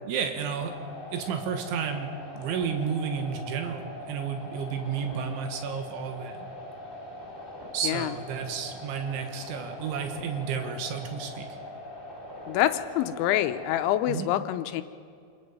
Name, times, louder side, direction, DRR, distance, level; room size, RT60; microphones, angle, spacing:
voice 1, 0.1-0.7 1.1-3.8 4.1-6.5 7.7-11.5 14.1-14.3, right 7 dB, 90° right, 5 dB, 3.8 m, -32 dB
sound 1, 0.6-13.9, left 1 dB, 15° left, 2.6 m, -42 dB
voice 2, 12.5-14.8, left 13 dB, 90° left, 10 dB, 3.1 m, -26 dB
25.5 x 21.5 x 5.5 m, 2.3 s
omnidirectional pair, 5.3 m